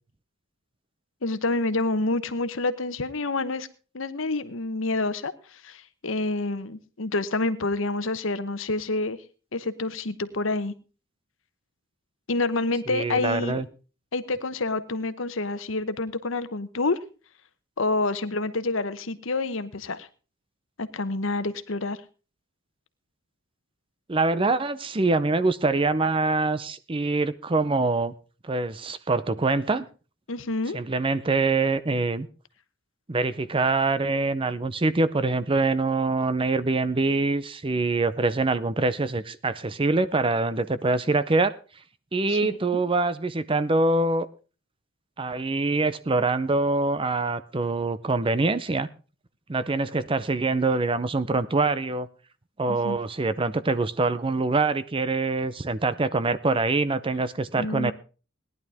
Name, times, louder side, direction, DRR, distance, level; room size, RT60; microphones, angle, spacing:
voice 1, 1.2-3.7 3.9-9.2 9.5-10.7 12.3-13.6 14.1-17.0 17.8-20.1 20.8-22.0 30.3-30.8 42.3-42.6 52.7-53.0 57.5-57.9, left 2 dB, 70° left, 12 dB, 1.0 m, -28 dB
voice 2, 12.9-13.7 24.1-28.1 28.4-29.9 30.7-32.3 33.1-41.5 42.1-44.3 45.2-48.9 49.5-52.1 52.6-57.9, right 3 dB, 25° right, 13 dB, 0.6 m, -24 dB
18.0 x 11.0 x 3.5 m, 0.35 s
head